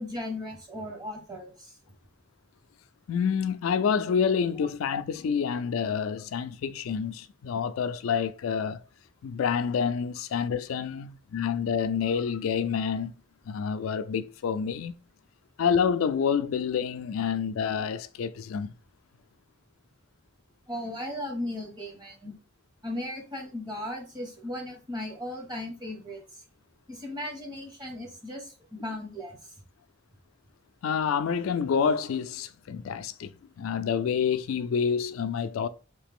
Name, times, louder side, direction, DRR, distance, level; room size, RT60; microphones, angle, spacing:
voice 1, 0.0-1.8 20.7-22.3 22.8-26.4 26.9-29.6, left 1 dB, 20° right, 1.1 m, -37 dB
voice 2, 3.1-8.8 9.2-13.1 13.5-14.9 15.6-18.7 30.8-33.3 33.6-35.7, left 6 dB, 85° left, 0.3 m, -28 dB
3.2 x 2.9 x 3.5 m
head